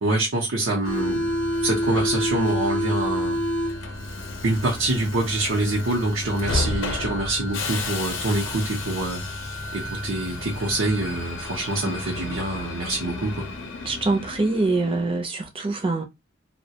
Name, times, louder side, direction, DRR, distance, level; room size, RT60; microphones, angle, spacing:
voice 1, 0.0-1.3 1.6-3.4 4.4-9.2 9.7-13.5, right 2 dB, 70° right, 0.6 m, -25 dB
Subway metro underground, 0.8-15.2, left 1 dB, 75° left, 0.6 m, -30 dB
voice 2, 11.6-12.3 13.8-16.0, right 3 dB, 25° right, 0.5 m, -25 dB
2.3 x 2.1 x 2.8 m
head